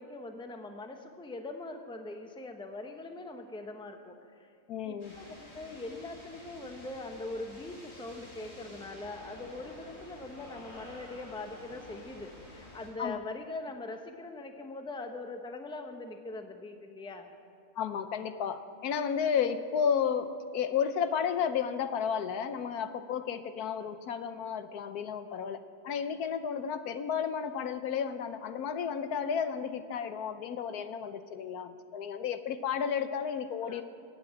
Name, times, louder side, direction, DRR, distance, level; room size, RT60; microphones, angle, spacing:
voice 1, 0.0-4.5 4.8-17.3 33.6-33.8, left 2 dB, 5° left, 5 dB, 0.8 m, -42 dB
voice 2, 4.7-5.2 13.0-13.2 17.8-33.8, left 7 dB, 75° left, 10 dB, 1.2 m, -32 dB
sound 1, 5.0-12.9, left 1 dB, 50° left, 3.8 m, -50 dB
16.0 x 8.6 x 9.0 m, 2.3 s
omnidirectional pair, 1.7 m